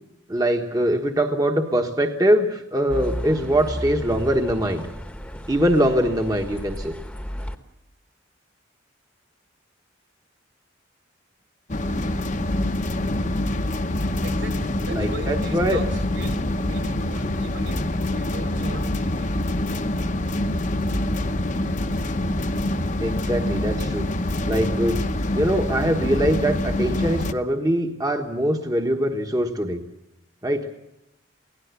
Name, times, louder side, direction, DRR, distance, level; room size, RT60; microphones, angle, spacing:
voice 1, 0.3-4.9 5.5-6.9 14.9-15.8 23.0-24.1 24.5-25.0 25.3-29.8 30.4-30.7, equal, 20° right, 4 dB, 1.3 m, -22 dB
sound 1, 2.9-7.6, equal, 5° left, 1.2 m, -33 dB
sound 2, 11.7-27.3, left 1 dB, 40° left, 1.0 m, -25 dB
voice 2, 14.2-19.4, right 1 dB, 70° right, 5 dB, 4.7 m, -39 dB
23.5 x 17.5 x 8.2 m, 0.86 s
head